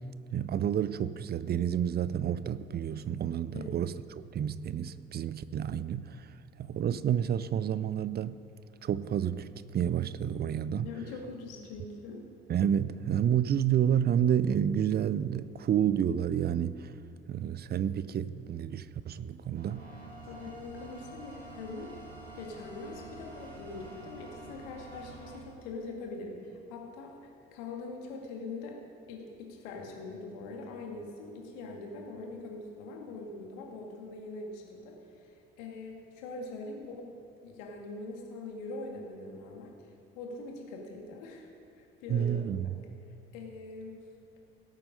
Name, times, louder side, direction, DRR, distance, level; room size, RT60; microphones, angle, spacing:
voice 1, 0.3-6.3 6.6-8.4 8.8-10.9 12.5-16.9 17.3-19.8 42.1-42.8, right 9 dB, 30° right, 0.5 m, -30 dB
voice 2, 10.8-12.2 20.2-21.9 22.3-28.8 29.1-35.3 35.6-37.1 37.4-41.5 41.8-42.4 43.3-44.0, left 3 dB, 65° left, 2.2 m, -42 dB
sound 1, 19.5-25.4, right 2 dB, 85° right, 1.8 m, -48 dB
17.0 x 9.1 x 5.5 m
figure-of-eight pair, 50°, 31 cm